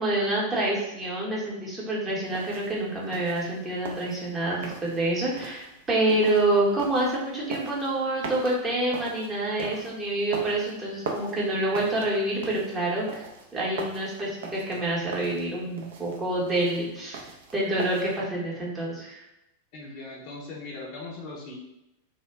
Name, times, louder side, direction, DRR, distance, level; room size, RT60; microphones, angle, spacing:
voice 1, 0.0-13.3 13.5-17.2 17.5-19.2, right 1 dB, 15° right, -5 dB, 0.8 m, -27 dB
sound 1, 2.2-18.2, right 4 dB, 55° right, 0.4 m, -41 dB
voice 2, 19.7-21.6, left 3 dB, 45° left, -1 dB, 0.5 m, -39 dB
2.2 x 2.1 x 3.3 m, 0.91 s
figure-of-eight pair, 90°, 0 cm